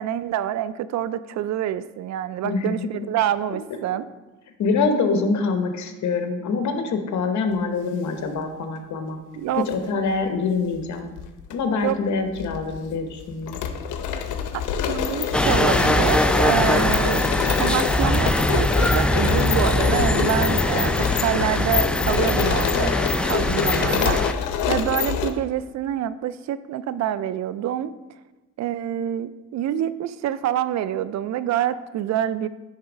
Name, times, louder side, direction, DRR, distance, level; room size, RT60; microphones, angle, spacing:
voice 1, 0.0-4.1 9.3-9.7 11.8-12.0 14.8-22.9 23.2-27.9 28.6-32.5, right 11 dB, 65° right, 15 dB, 0.4 m, -26 dB
voice 2, 2.4-3.0 4.6-9.2 9.7-11.1 11.5-13.6, left 4 dB, 70° left, 6 dB, 1.0 m, -25 dB
sound 1, 9.5-9.7 10.8-11.5 11.8-11.9 12.3-25.3, left 8 dB, 90° left, 0.7 m, -26 dB
sound 2, 15.3-24.3, left 1 dB, 5° left, 0.3 m, -22 dB
9.6 x 3.4 x 5.0 m, 1.1 s
cardioid pair, 90°, 30 cm